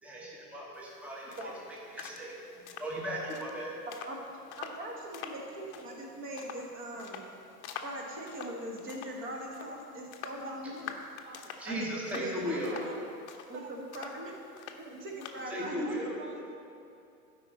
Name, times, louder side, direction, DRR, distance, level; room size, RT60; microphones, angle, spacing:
voice 1, 0.0-1.4 1.9-3.7 11.6-12.7 15.5-16.2, equal, 5° right, -4 dB, 1.2 m, -37 dB
sound 1, 0.7-15.7, left 7 dB, 45° left, 0.8 m, -47 dB
voice 2, 4.6-7.3 7.8-10.9 11.6-11.9 12.1-12.8 13.5-14.3 14.8-15.9, right 1 dB, 25° right, 0 dB, 1.6 m, -41 dB
voice 3, 10.4-10.8 11.2-11.5 12.4-13.1 13.5-13.6 15.0-15.1 15.8-16.6, right 2 dB, 50° right, 1 dB, 1.0 m, -49 dB
11.5 x 5.2 x 4.2 m, 2.6 s
hypercardioid pair, 105°, 47 cm